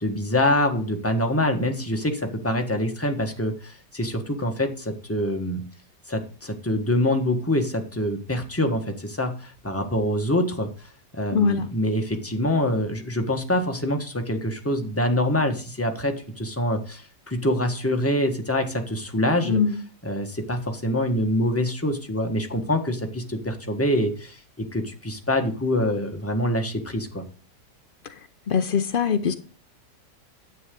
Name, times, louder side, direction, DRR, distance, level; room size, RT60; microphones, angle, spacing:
voice 1, 0.0-5.6 6.1-19.6 20.0-27.2, left 1 dB, 10° left, 1.3 m, -25 dB
voice 2, 11.3-11.7 19.5-19.7 28.5-29.3, left 6 dB, 85° left, 0.4 m, -22 dB
9.8 x 8.4 x 3.8 m
omnidirectional pair, 1.9 m